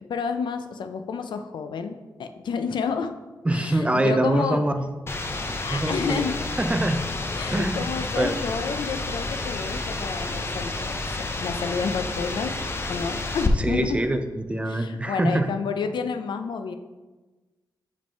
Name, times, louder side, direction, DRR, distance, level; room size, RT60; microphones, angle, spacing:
voice 1, 0.1-3.1 3.5-4.6 5.6-6.4 7.3-10.9 11.4-12.6 12.9-14.0 14.7-16.7, left 5 dB, 75° left, 8 dB, 0.5 m, -30 dB
voice 2, 3.4-4.8 5.7-6.2 6.6-7.0 7.5-7.9 8.2-8.3 13.6-15.5, right 1 dB, 15° right, 7 dB, 0.5 m, -24 dB
sound 1, 5.1-13.5, left 2 dB, 30° left, 0.6 m, -30 dB
5.3 x 5.2 x 4.4 m, 1.2 s
wide cardioid pair, 115°, 8 cm